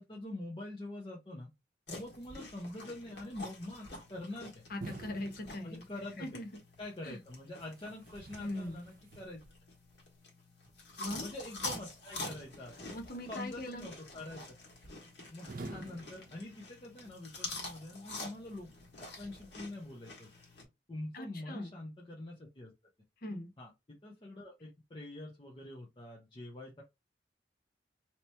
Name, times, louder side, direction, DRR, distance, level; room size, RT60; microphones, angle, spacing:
voice 1, 0.0-1.5 1.9-4.6 5.6-6.3 6.8-9.4 11.1-12.9 13.3-14.5 15.3-18.7 19.2-20.3 20.9-22.7 23.6-26.8, left 1 dB, 30° left, 0.8 m, -45 dB
sound 1, 1.9-20.6, left 2 dB, 75° left, 1.5 m, -47 dB
voice 2, 4.7-5.8 6.2-6.5 7.0-7.2 8.4-8.8 11.0-11.3 12.9-13.9 21.1-21.7 23.2-23.5, left 1 dB, 55° left, 0.9 m, -40 dB
sound 2, 4.8-6.3 7.6-9.6 12.3-13.1 15.5-16.9, right 2 dB, 55° right, 0.7 m, -49 dB
3.0 x 2.9 x 3.2 m
head